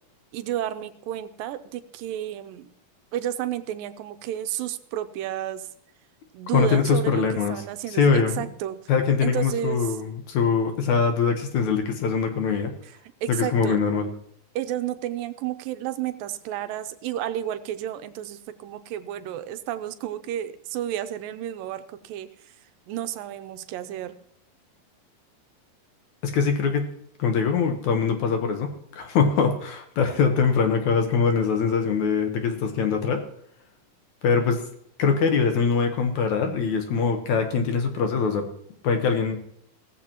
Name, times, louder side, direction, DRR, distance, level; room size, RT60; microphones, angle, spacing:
voice 1, 0.3-2.7 3.1-5.7 6.3-8.9 9.2-9.9 12.8-12.9 13.2-13.8 14.6-22.5 22.9-24.2, right 11 dB, 80° right, 10 dB, 2.4 m, -31 dB
voice 2, 6.5-7.6 8.0-8.4 8.9-12.7 13.3-14.1 26.2-26.9 27.2-33.2 34.2-34.6 35.0-38.5 38.8-39.4, left 5 dB, 65° left, 5 dB, 2.3 m, -23 dB
17.0 x 14.5 x 3.0 m, 0.68 s
omnidirectional pair, 4.0 m